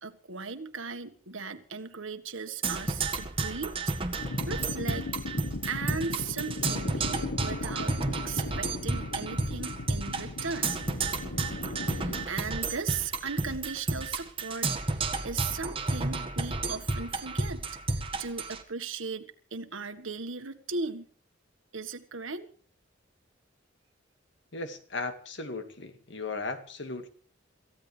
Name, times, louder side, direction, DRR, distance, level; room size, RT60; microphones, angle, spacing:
voice 1, 0.0-3.7 4.5-5.1 5.7-10.7 11.8-17.6 18.2-21.1 21.7-22.5, right 4 dB, 80° right, 9 dB, 1.6 m, -37 dB
Percussion, 2.6-18.6, right 3 dB, 30° right, 1.7 m, -32 dB
sound 1, 4.2-12.3, left 2 dB, 80° left, 1.1 m, -37 dB
voice 2, 24.5-27.1, left 3 dB, 60° left, 8 dB, 2.0 m, -36 dB
27.5 x 15.0 x 3.4 m, 0.44 s
head